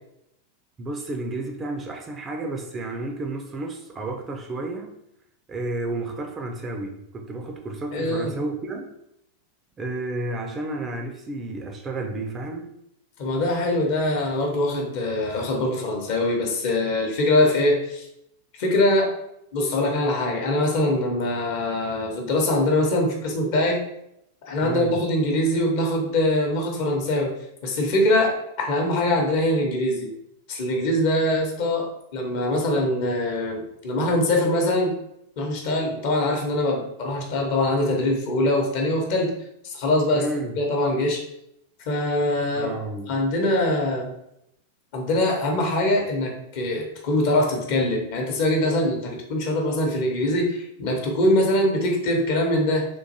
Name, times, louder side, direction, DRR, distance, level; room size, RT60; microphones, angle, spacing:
voice 1, 0.8-4.9 5.5-8.9 9.8-12.7 24.6-25.0 40.1-40.6 42.5-43.2, right 2 dB, 20° right, 2 dB, 0.5 m, -31 dB
voice 2, 7.9-8.3 13.2-18.1 18.6-19.1 19.5-23.8 24.5-27.3 27.6-30.1 30.5-34.9 35.4-39.3 39.6-40.2 40.6-41.2 41.9-42.7 43.1-44.1 44.9-52.9, left 1 dB, 50° left, 1 dB, 0.8 m, -23 dB
3.7 x 2.5 x 2.8 m, 0.80 s
figure-of-eight pair, 90°, 0 cm